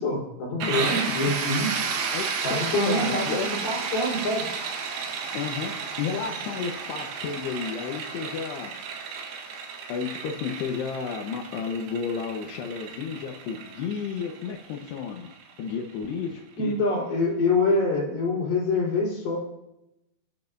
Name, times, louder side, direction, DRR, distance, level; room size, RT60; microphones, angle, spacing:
voice 1, 0.0-1.7 2.4-3.4 3.6-4.5 16.6-19.4, left 2 dB, 65° left, -4 dB, 5.9 m, -25 dB
sound 1, 0.6-16.2, right 5 dB, 75° right, 3.4 m, -33 dB
voice 2, 2.1-3.5 5.3-8.9 9.9-15.3 15.6-16.8, left 6 dB, 90° left, 1 dB, 3.2 m, -32 dB
29.5 x 11.0 x 2.7 m, 0.88 s
omnidirectional pair, 4.6 m